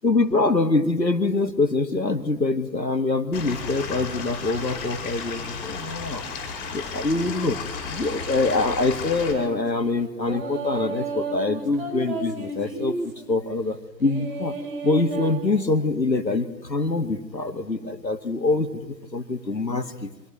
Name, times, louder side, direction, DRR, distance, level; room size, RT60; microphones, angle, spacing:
voice 1, 0.0-6.2 6.7-14.5 14.8-20.1, left 3 dB, 90° left, 9 dB, 2.2 m, -24 dB
Stream / Liquid, 3.3-9.3, left 5 dB, 20° left, 4.9 m, -34 dB
sound 1, 9.3-9.6 10.2-13.2 14.0-15.3, right 3 dB, 30° right, 5.1 m, -32 dB
24.5 x 17.0 x 8.8 m, 1.0 s
figure-of-eight pair, 140°, 49 cm